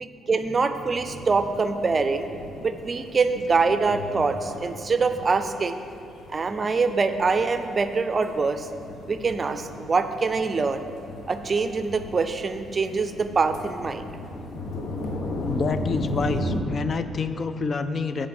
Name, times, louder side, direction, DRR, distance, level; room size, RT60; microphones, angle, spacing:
voice 1, 0.0-2.3 2.6-5.8 6.3-8.7 9.1-10.9 11.3-14.1, right 4 dB, 35° right, 9 dB, 0.5 m, -24 dB
sound 1, 0.9-16.6, left 1 dB, 70° left, 1.1 m, -36 dB
voice 2, 15.5-18.3, left 4 dB, 45° left, 11 dB, 0.4 m, -28 dB
7.6 x 5.0 x 7.1 m, 2.6 s
cardioid pair, 90°, 0 cm